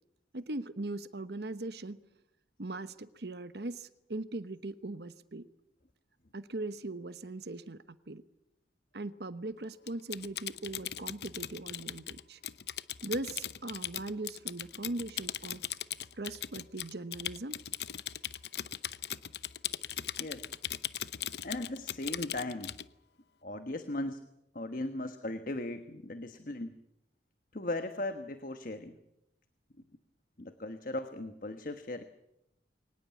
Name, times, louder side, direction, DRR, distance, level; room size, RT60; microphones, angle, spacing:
voice 1, 0.3-2.0 2.6-5.4 6.3-8.2 8.9-12.4 13.0-15.6 16.2-17.6, right 2 dB, 65° right, 13 dB, 1.0 m, -40 dB
Typing, 9.9-22.9, left 11 dB, 65° left, 0.8 m, -39 dB
voice 2, 20.2-20.5 21.4-22.8 23.4-24.2 24.5-26.8 27.5-29.0 30.4-32.0, left 2 dB, 50° left, 9 dB, 1.3 m, -38 dB
23.5 x 19.5 x 8.5 m, 0.85 s
head